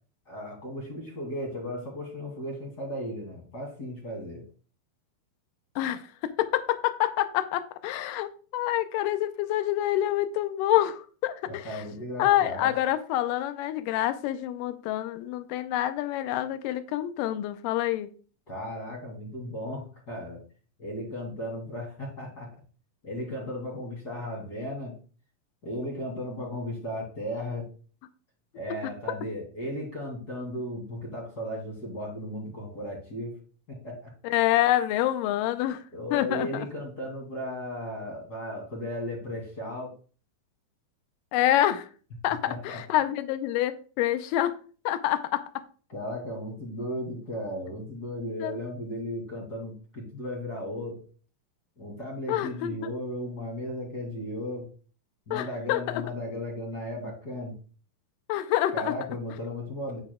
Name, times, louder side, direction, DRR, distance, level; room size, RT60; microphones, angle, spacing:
voice 1, 0.3-4.4 11.5-12.7 18.5-20.4 20.8-22.5 23.0-25.0 25.6-27.7 28.5-33.4 33.7-34.1 35.9-39.9 42.5-42.8 45.9-51.0 51.8-54.7 55.3-57.5 58.7-60.0, left 1 dB, 30° left, 2.5 m, -35 dB
voice 2, 5.8-11.8 12.2-18.1 34.2-35.8 36.1-36.5 41.3-41.9 42.2-42.4 42.6-44.6 44.9-45.4 48.4-48.6 52.3-52.8 55.3-56.0 58.3-58.9, left 13 dB, 85° left, 2.0 m, -27 dB
9.3 x 9.1 x 2.3 m
omnidirectional pair, 4.4 m